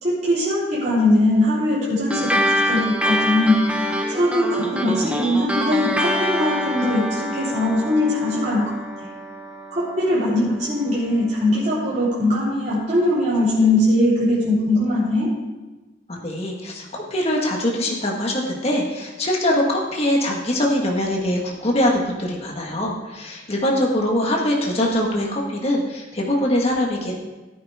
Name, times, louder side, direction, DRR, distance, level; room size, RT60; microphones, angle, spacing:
voice 1, 0.0-3.6 4.1-8.6 9.7-15.3, left 1 dB, 40° right, -9 dB, 4.1 m, -20 dB
sound 1, 2.1-10.9, equal, 5° right, 0.9 m, -26 dB
voice 2, 16.1-27.1, left 1 dB, 35° left, -1 dB, 1.8 m, -22 dB
16.0 x 9.3 x 3.7 m, 1.2 s
head